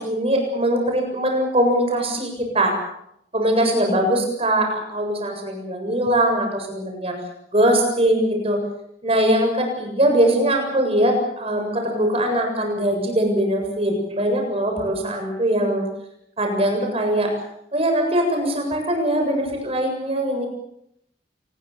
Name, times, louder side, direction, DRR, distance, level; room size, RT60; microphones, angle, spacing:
voice 1, 0.0-2.7 3.3-7.2 7.5-8.6 9.0-15.8 16.4-17.3 17.7-20.5, right 1 dB, 35° right, 3 dB, 7.7 m, -21 dB
27.0 x 20.5 x 7.2 m, 0.77 s
head